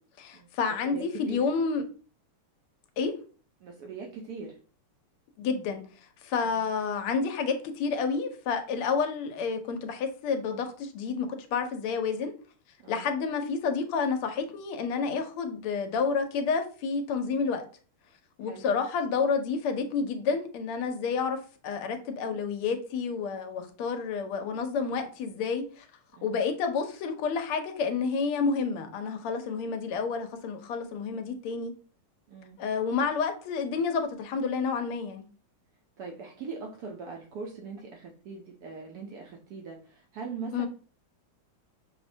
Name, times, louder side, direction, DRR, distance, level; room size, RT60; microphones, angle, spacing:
voice 1, 0.2-1.8 3.0-3.1 5.4-5.8 6.2-12.3 12.9-17.6 18.4-25.9 26.2-31.7 32.6-35.2 40.5-40.7, left 5 dB, 90° left, 6 dB, 1.5 m, -29 dB
voice 2, 0.9-1.4 3.6-4.6 6.4-6.6 12.8-13.1 18.4-18.7 26.2-26.4 32.3-32.6 36.0-40.7, right 4 dB, 90° right, 1 dB, 0.8 m, -41 dB
5.9 x 2.1 x 2.6 m, 0.39 s
omnidirectional pair, 2.4 m